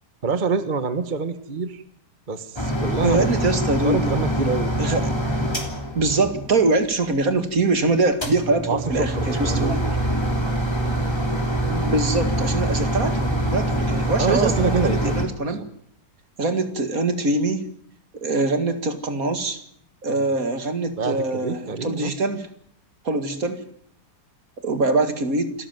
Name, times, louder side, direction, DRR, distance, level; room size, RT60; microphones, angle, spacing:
voice 1, 0.2-1.8 2.3-3.3 3.8-4.7 8.7-9.9 14.2-15.1 15.5-15.6 20.1-20.3 21.0-22.1, right 4 dB, 30° right, 10 dB, 1.4 m, -26 dB
sound 1, 2.6-6.8 8.1-15.3, right 1 dB, 15° left, 3.5 m, -24 dB
voice 2, 3.0-4.1 4.8-5.1 5.9-9.8 11.7-15.6 16.4-17.7 18.1-19.6 20.0-22.5 23.0-23.6 24.6-25.5, right 3 dB, 60° right, 8 dB, 2.6 m, -23 dB
28.0 x 14.0 x 9.3 m, 0.67 s
omnidirectional pair, 1.7 m